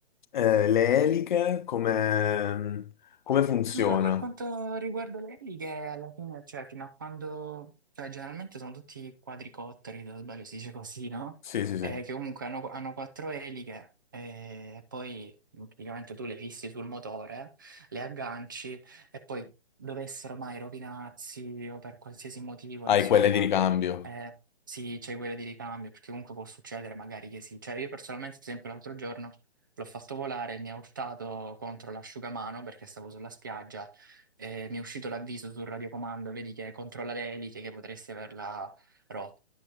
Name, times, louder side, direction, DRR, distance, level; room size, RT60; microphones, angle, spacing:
voice 1, 0.3-2.8 3.3-4.2 11.5-11.9 22.9-24.1, left 9 dB, 50° left, 0.5 m, -25 dB
voice 2, 3.7-11.3 11.8-19.5 19.8-23.5 24.0-24.3 24.7-29.4 29.8-39.4, right 3 dB, 20° right, 0.4 m, -39 dB
10.0 x 6.0 x 2.9 m
hypercardioid pair, 150°, 32 cm